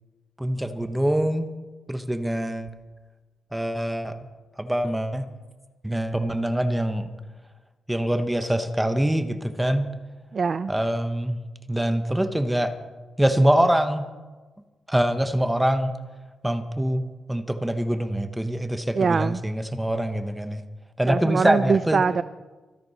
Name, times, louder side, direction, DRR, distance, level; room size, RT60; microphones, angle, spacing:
voice 1, 0.4-1.5 1.9-2.7 3.5-4.2 4.6-5.3 5.8-7.1 7.9-9.9 10.7-11.4 11.7-12.7 13.2-14.0 14.9-15.9 16.4-17.0 17.3-20.6 21.0-22.0, right 1 dB, 5° right, 9 dB, 0.9 m, -24 dB
voice 2, 10.3-10.7 19.0-19.4 21.1-22.2, right 5 dB, 40° right, 14 dB, 0.3 m, -23 dB
24.5 x 10.5 x 4.1 m, 1.3 s
wide cardioid pair, 135°, 0 cm